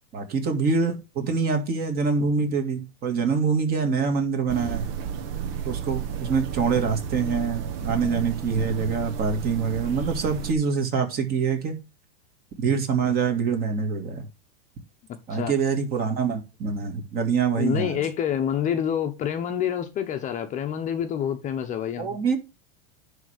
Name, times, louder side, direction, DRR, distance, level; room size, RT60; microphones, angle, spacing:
voice 1, 0.1-4.9 5.7-11.7 12.6-14.3 15.3-18.0 22.0-22.4, right 5 dB, 30° right, 2.1 m, -25 dB
sound 1, 4.5-10.5, right 7 dB, 60° right, 1.5 m, -32 dB
voice 2, 17.6-22.2, left 9 dB, 25° left, 0.8 m, -27 dB
10.5 x 3.5 x 6.5 m
supercardioid pair, 140°, 31 cm